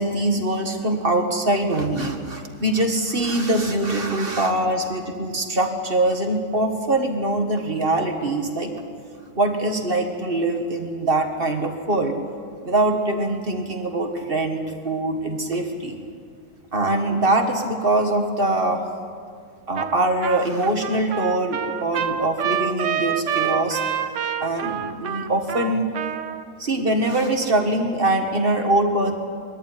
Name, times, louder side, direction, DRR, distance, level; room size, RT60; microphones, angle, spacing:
voice 1, 0.0-8.7 9.4-12.1 12.6-16.0 16.7-18.8 19.7-23.8 24.4-25.8 26.6-29.1, right 2 dB, 30° right, 3 dB, 1.9 m, -23 dB
Trumpet, 19.8-20.0 20.2-26.4, right 8 dB, 60° right, 0.8 m, -27 dB
22.5 x 14.0 x 9.8 m, 2.2 s
omnidirectional pair, 2.1 m